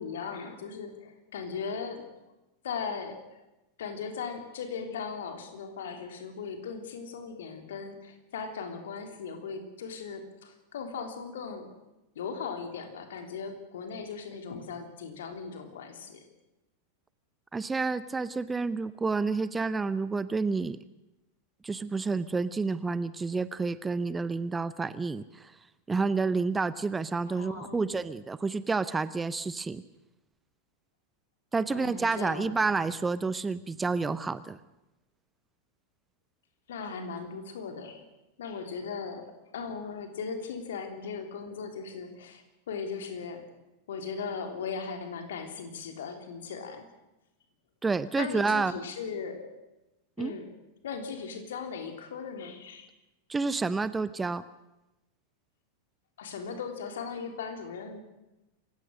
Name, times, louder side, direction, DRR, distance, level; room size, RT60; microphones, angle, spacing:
voice 1, 0.0-2.1 2.6-3.4 3.8-11.7 12.1-16.2 27.3-28.0 31.7-32.5 36.7-38.0 38.4-39.3 39.5-43.4 43.9-46.8 48.2-49.5 50.2-50.5 50.8-52.9 56.2-58.0, left 5 dB, 60° left, 6 dB, 3.4 m, -38 dB
voice 2, 17.5-20.8 21.6-25.5 25.9-29.8 31.5-34.6 47.8-48.7 50.2-50.3 53.3-54.4, right 4 dB, 10° right, 16 dB, 0.7 m, -29 dB
27.0 x 16.0 x 6.5 m, 0.98 s
figure-of-eight pair, 90°, 0 cm